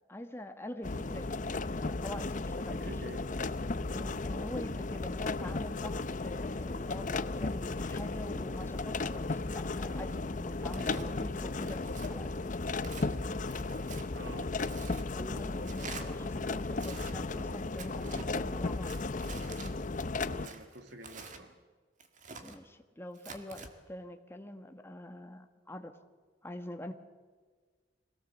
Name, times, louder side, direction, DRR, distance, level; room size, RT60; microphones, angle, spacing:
voice 1, 0.1-1.4 1.8-3.0 3.9-12.6 15.1-18.9 22.4-26.0 26.4-26.9, left 1 dB, 15° left, 6 dB, 1.4 m, -45 dB
sound 1, 0.8-20.5, left 3 dB, 45° left, 0.7 m, -35 dB
voice 2, 2.7-3.2 10.7-11.1 14.1-14.5 15.3-15.5 20.2-21.6, right 1 dB, 75° right, 7 dB, 2.0 m, -48 dB
Tearing, 10.7-11.1 11.7-12.1 12.8-13.1 13.5-14.1 14.6-15.1 15.6-16.1 16.7-17.1 17.8-18.3 18.9-19.7 20.4-21.4 22.0-22.6 23.2-23.7, right 4 dB, 45° right, 1.8 m, -46 dB
23.0 x 17.5 x 7.3 m, 1.5 s
head